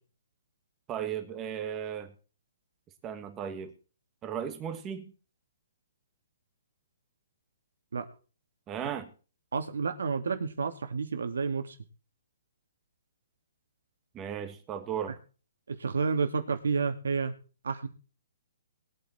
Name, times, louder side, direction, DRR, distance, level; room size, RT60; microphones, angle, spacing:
voice 1, 0.9-2.1 3.0-3.7 4.2-5.1 8.7-9.1 14.1-15.2, right 8 dB, 15° right, 8 dB, 1.8 m, -36 dB
voice 2, 9.5-11.7 15.7-17.3 17.6-17.9, right 5 dB, 90° right, 8 dB, 2.5 m, -30 dB
21.0 x 8.8 x 4.5 m, 0.37 s
hypercardioid pair, 165°, 0 cm